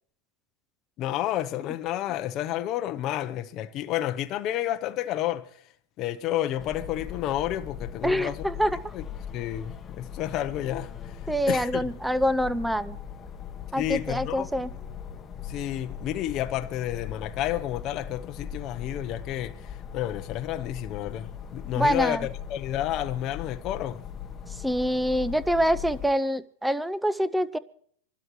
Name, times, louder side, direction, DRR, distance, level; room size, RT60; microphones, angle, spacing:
voice 1, 1.0-5.5 6.0-8.5 8.9-9.0 9.3-11.8 13.8-14.5 15.4-24.1, left 13 dB, 35° left, 0.7 m, -30 dB
sound 1, 6.6-26.1, left 8 dB, 20° left, 1.0 m, -40 dB
voice 2, 8.0-8.8 11.3-13.0 13.7-14.7 21.8-22.3 24.6-27.6, equal, 5° right, 0.5 m, -25 dB
26.5 x 12.5 x 3.1 m
supercardioid pair, 145°, 0 cm